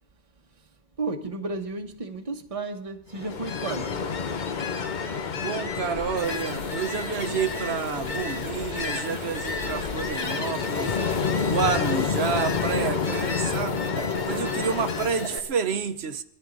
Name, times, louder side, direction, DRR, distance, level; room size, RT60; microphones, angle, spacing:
voice 1, 1.0-4.0, right 3 dB, 30° right, 1.2 m, -33 dB
Ocean, 3.1-15.3, left 5 dB, 45° left, 0.9 m, -29 dB
voice 2, 5.4-11.0 11.4-13.8 14.2-16.2, right 6 dB, 65° right, 1.1 m, -29 dB
sound 1, 6.2-15.4, left 1 dB, 70° left, 2.9 m, -38 dB
23.0 x 14.0 x 3.9 m
omnidirectional pair, 1.2 m